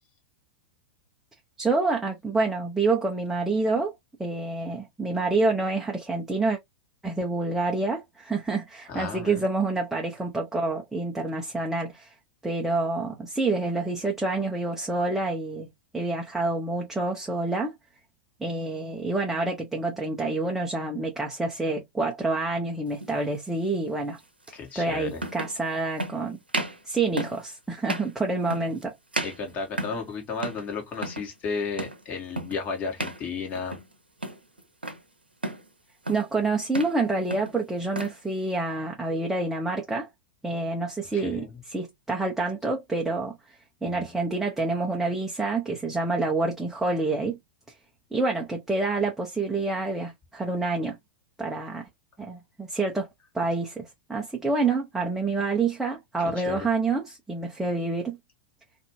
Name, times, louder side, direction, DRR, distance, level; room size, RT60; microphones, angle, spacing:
voice 1, 1.6-3.9 4.2-6.6 7.0-12.1 12.4-17.7 18.4-24.2 24.7-26.4 26.8-28.9 36.1-40.1 40.4-43.3 43.8-47.4 48.1-51.0 51.4-51.9 52.2-53.1 53.3-58.2, right 3 dB, 5° right, 0.7 m, -27 dB
voice 2, 8.9-9.4 24.5-25.2 29.2-33.8 41.1-41.6 43.8-44.1 56.2-56.7, left 4 dB, 30° left, 1.2 m, -34 dB
sound 1, 23.0-23.2 24.5-24.6 25.2-25.6 26.0-26.2 26.5-26.8 27.2-27.4 27.8-28.1 28.5-28.8 29.1-30.1 30.4-30.7 30.9-31.3 31.8-32.0 32.4-32.6 33.0-33.2 33.5-33.9 34.2-35.0 35.4-35.7 36.0-36.3 36.6-37.0 37.3-38.2, right 1 dB, 90° right, 0.6 m, -33 dB
2.6 x 2.5 x 2.9 m
figure-of-eight pair, 95°, 5 cm